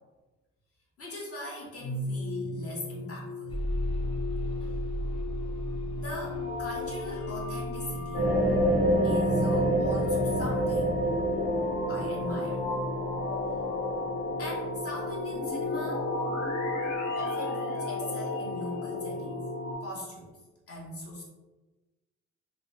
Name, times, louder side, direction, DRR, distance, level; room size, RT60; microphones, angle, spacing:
voice 1, 1.0-3.5 4.6-4.7 6.0-8.2 9.0-11.0 11.9-12.7 14.4-16.1 17.1-19.4 19.8-20.3 20.7-21.2, left 1 dB, 50° left, -3 dB, 1.0 m, -40 dB
sound 1, 1.8-19.7, left 2 dB, 75° left, 0.7 m, -34 dB
sound 2, 3.5-15.4 16.1-16.2 16.7-16.8, equal, 20° left, 0.3 m, -38 dB
sound 3, 8.1-16.9 17.4-17.5, right 1 dB, 90° left, 1.0 m, -29 dB
3.0 x 2.1 x 2.6 m, 1.2 s
cardioid pair, 90°, 30 cm